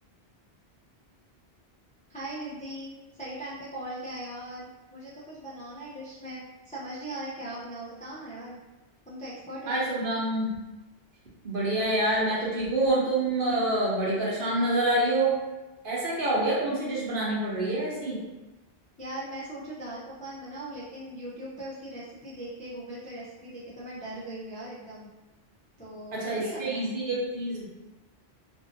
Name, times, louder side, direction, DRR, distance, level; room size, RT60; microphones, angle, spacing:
voice 1, 2.1-8.6 9.1-9.8 19.0-25.1 25.8-27.0, right 1 dB, 15° left, -8 dB, 0.3 m, -39 dB
voice 2, 9.7-10.5 11.4-15.4 15.8-18.2 26.1-27.7, right 1 dB, 55° right, -6 dB, 0.9 m, -27 dB
2.6 x 2.5 x 2.6 m, 1.1 s
omnidirectional pair, 1.1 m